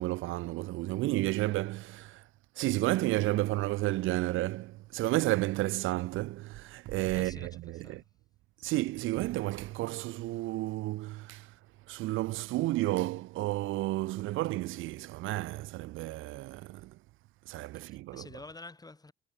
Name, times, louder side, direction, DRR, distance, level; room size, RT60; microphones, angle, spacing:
voice 1, 0.0-2.2 2.6-8.0 8.6-11.5 11.9-16.9 17.5-18.3, right 18 dB, 85° right, 0.5 m, -32 dB
voice 2, 7.1-8.0 17.9-19.1, left 3 dB, 20° left, 6.1 m, -49 dB
cardioid pair, 90°, 20 cm